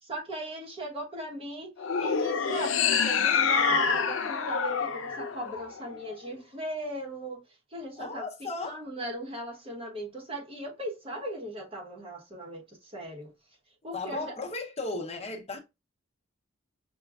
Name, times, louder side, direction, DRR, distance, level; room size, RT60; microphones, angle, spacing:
voice 1, 0.0-1.7 2.0-7.4 7.7-8.3 8.6-13.3 13.8-14.3, right 1 dB, 30° right, 1.0 m, -37 dB
sound 1, 1.8-6.2, left 6 dB, 85° left, 0.5 m, -27 dB
voice 2, 8.0-8.8 13.9-15.6, left 3 dB, 35° left, 0.8 m, -35 dB
6.2 x 2.2 x 2.3 m
head